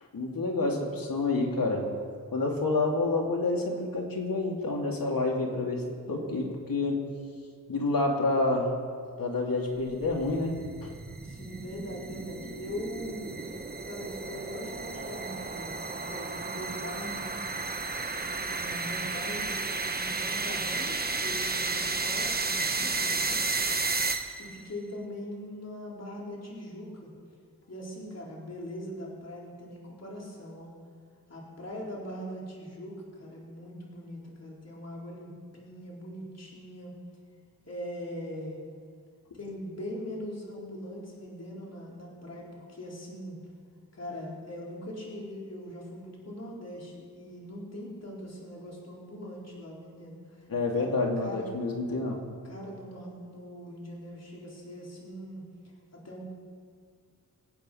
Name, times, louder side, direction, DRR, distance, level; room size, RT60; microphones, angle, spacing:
voice 1, 0.1-1.9 2.3-7.0 7.7-8.7 9.2-10.9 50.5-52.2, left 2 dB, 70° left, 0 dB, 2.8 m, -28 dB
sound 1, 9.8-24.6, right 3 dB, 25° right, 1.1 m, -33 dB
voice 2, 11.2-13.5 13.9-17.4 18.1-23.6 24.4-27.1 27.7-30.7 31.3-36.9 37.7-38.6 39.3-43.4 43.9-50.4 50.7-50.9 51.2-51.5 52.4-55.4 55.9-56.2, equal, 45° left, -4 dB, 4.1 m, -41 dB
24.5 x 8.6 x 5.7 m, 2.1 s
wide cardioid pair, 90°, 35 cm